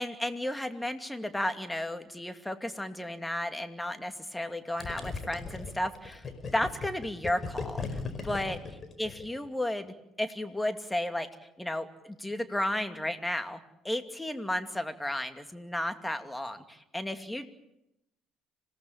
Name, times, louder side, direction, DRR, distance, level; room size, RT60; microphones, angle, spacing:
voice 1, 0.0-6.3 6.5-8.0 8.2-8.6 9.0-11.3 11.6-13.6 13.8-17.5, left 1 dB, 10° left, 8 dB, 2.6 m, -33 dB
Gurgling, 4.8-9.5, left 4 dB, 35° left, 5.0 m, -37 dB
26.5 x 18.5 x 8.9 m, 0.86 s
hypercardioid pair, 55°, 0 cm